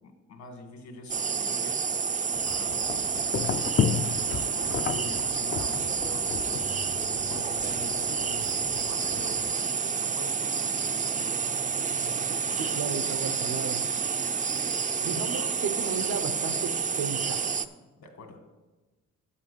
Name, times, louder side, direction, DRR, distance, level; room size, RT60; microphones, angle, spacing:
voice 1, 0.0-1.8 2.4-2.9 4.2-6.4 7.3-9.4 10.0-11.2 15.0-15.3 18.0-18.4, left 2 dB, 65° left, 5 dB, 1.8 m, -45 dB
sound 1, 1.1-17.7, right 6 dB, 25° right, 0.4 m, -29 dB
sound 2, 2.3-9.5, left 7 dB, 35° left, 0.5 m, -33 dB
voice 2, 12.6-13.8 15.0-17.4, right 5 dB, 80° right, 10 dB, 0.9 m, -34 dB
8.3 x 5.6 x 6.9 m, 1.2 s
cardioid pair, 90°, 30 cm